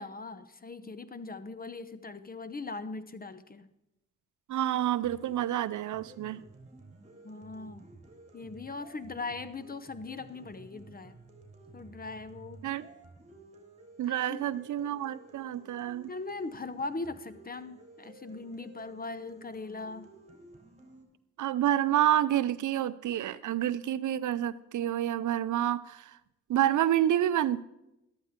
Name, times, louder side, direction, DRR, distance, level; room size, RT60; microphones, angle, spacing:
voice 1, 0.0-3.7 7.2-7.9 8.3-11.2 11.7-12.6 14.1-14.4 16.1-20.1, left 3 dB, 30° left, 13 dB, 0.9 m, -40 dB
voice 2, 4.5-6.4 12.6-12.8 14.0-16.1 21.4-26.2 26.5-27.6, right 11 dB, 70° right, 16 dB, 0.5 m, -28 dB
sound 1, 5.0-21.0, right 2 dB, 20° right, 3.6 m, -54 dB
13.0 x 12.0 x 3.7 m, 0.88 s
cardioid pair, 55°, 31 cm